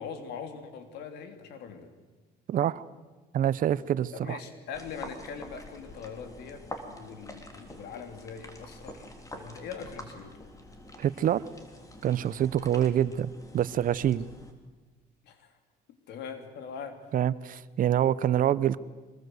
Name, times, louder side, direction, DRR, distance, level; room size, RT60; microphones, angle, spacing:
voice 1, 0.0-1.9 4.1-9.1 9.4-10.4 12.2-12.4 15.2-15.6 16.1-17.0, left 6 dB, 75° left, 7 dB, 3.2 m, -42 dB
voice 2, 2.5-2.8 3.3-4.4 11.0-11.4 12.0-14.3 17.1-18.8, right 10 dB, 55° right, 17 dB, 0.9 m, -26 dB
sound 1, 4.7-14.5, left 1 dB, 20° left, 3.5 m, -46 dB
25.0 x 20.5 x 8.1 m, 1.3 s
cardioid pair, 110°, 17 cm